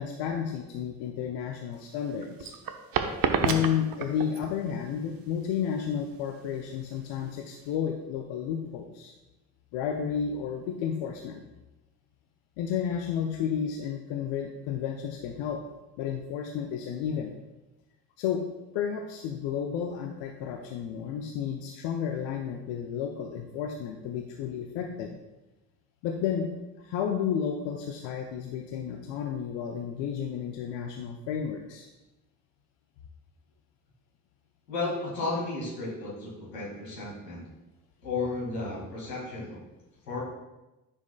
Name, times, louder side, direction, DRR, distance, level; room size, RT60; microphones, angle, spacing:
voice 1, 0.0-2.6 3.4-9.1 9.7-11.4 12.6-15.6 16.0-17.3 18.2-18.4 18.7-25.2 26.0-26.5 26.8-31.9, left 8 dB, 65° left, 3 dB, 0.7 m, -32 dB
sound 1, 1.7-7.7, right 6 dB, 45° right, 0.9 m, -31 dB
voice 2, 34.7-37.4 38.0-39.6 40.0-40.2, left 3 dB, 85° left, -5 dB, 2.2 m, -33 dB
9.8 x 6.1 x 2.3 m, 1.0 s
figure-of-eight pair, 45°, 48 cm